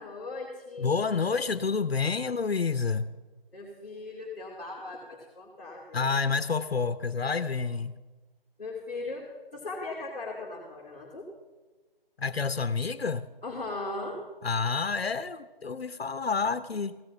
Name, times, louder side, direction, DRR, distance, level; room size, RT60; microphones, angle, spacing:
voice 1, 0.0-1.2 3.5-6.1 8.6-9.3 9.5-11.3 13.4-14.2, left 2 dB, 5° left, -16 dB, 1.0 m, -38 dB
voice 2, 0.8-3.1 5.9-8.0 12.2-13.3 14.4-17.0, left 5 dB, 90° left, 12 dB, 0.7 m, -29 dB
15.5 x 6.6 x 7.9 m, 1.2 s
figure-of-eight pair, 165°, 30 cm